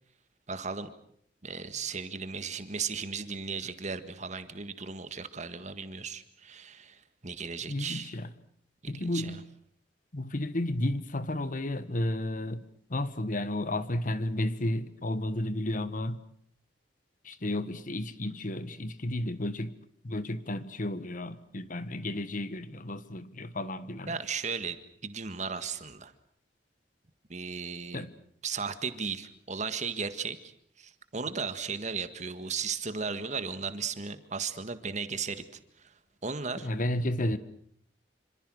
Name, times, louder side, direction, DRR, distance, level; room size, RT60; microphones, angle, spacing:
voice 1, 0.5-0.9 1.4-8.1 8.8-9.4 24.1-26.1 27.3-28.1 28.4-30.5 30.8-35.4 35.8-35.9 36.2-36.7, right 5 dB, 40° right, 1.8 m, -36 dB
voice 2, 7.7-8.3 8.9-9.4 10.1-12.6 12.9-16.2 17.2-19.7 20.0-24.1 27.9-28.1 36.6-37.4, left 1 dB, 50° left, 1.4 m, -32 dB
27.0 x 26.0 x 6.4 m
head